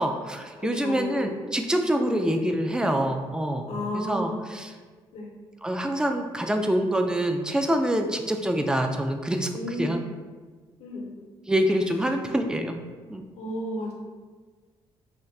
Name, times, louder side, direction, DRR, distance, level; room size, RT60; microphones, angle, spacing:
voice 1, 0.0-3.7 3.9-4.7 5.6-10.0 11.5-12.8 13.1-13.2, right 1 dB, 5° right, 5 dB, 0.3 m, -26 dB
voice 2, 0.6-1.3 2.0-2.6 3.7-4.4 5.1-5.3 9.5-10.0 10.8-11.0 13.4-13.9, left 1 dB, 75° left, -1 dB, 0.6 m, -32 dB
2.2 x 2.2 x 3.6 m, 1.4 s
supercardioid pair, 60°, 11 cm